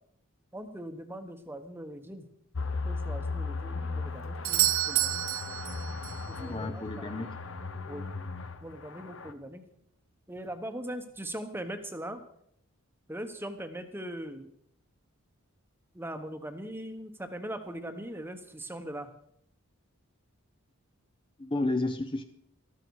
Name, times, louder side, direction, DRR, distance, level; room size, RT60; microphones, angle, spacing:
voice 1, 0.5-2.3 2.8-5.2 6.3-7.1 7.9-8.1 8.6-9.6 10.3-12.2 13.1-14.5 15.9-19.1, right 1 dB, 10° right, 8 dB, 1.0 m, -40 dB
sound 1, 2.5-9.3, left 3 dB, 60° left, 0.9 m, -37 dB
Doorbell, 4.4-6.3 10.4-10.5, right 15 dB, 65° right, 0.8 m, -29 dB
voice 2, 6.4-7.3 21.4-22.2, left 2 dB, 25° left, 8 dB, 0.7 m, -31 dB
13.5 x 13.0 x 4.7 m, 0.72 s
head